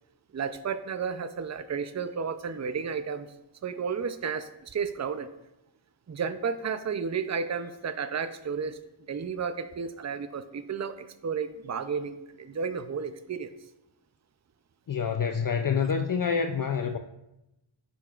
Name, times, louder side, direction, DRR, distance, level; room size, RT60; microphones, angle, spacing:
voice 1, 0.3-3.3 3.6-5.3 6.1-8.8 9.1-13.5, right 6 dB, 35° right, 0.5 m, -32 dB
voice 2, 14.9-17.0, left 6 dB, 45° left, 0.5 m, -27 dB
10.0 x 6.9 x 2.4 m
wide cardioid pair, 50°, 48 cm